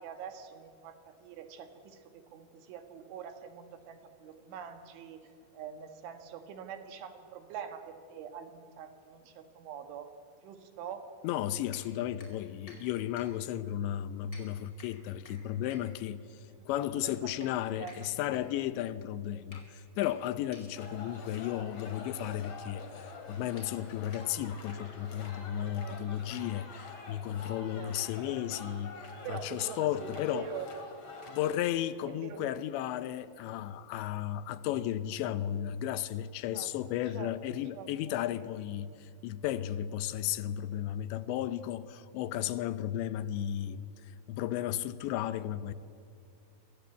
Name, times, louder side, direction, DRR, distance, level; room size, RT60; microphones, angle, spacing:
voice 1, 0.0-10.1 10.4-11.0 16.6-16.7 16.9-17.5 17.8-18.0 25.8-26.3 27.8-28.0 28.2-28.4 29.2-30.7 32.0-32.4 36.5-36.8 37.1-37.3 37.7-38.2, right 8 dB, 90° right, 4.2 m, -45 dB
voice 2, 11.2-30.5 31.3-45.7, left 11 dB, 80° left, 3.0 m, -34 dB
sound 1, 11.7-24.7, left 2 dB, 20° left, 4.7 m, -58 dB
sound 2, 20.8-31.5, left 4 dB, 40° left, 3.0 m, -47 dB
27.5 x 24.0 x 8.3 m
omnidirectional pair, 5.3 m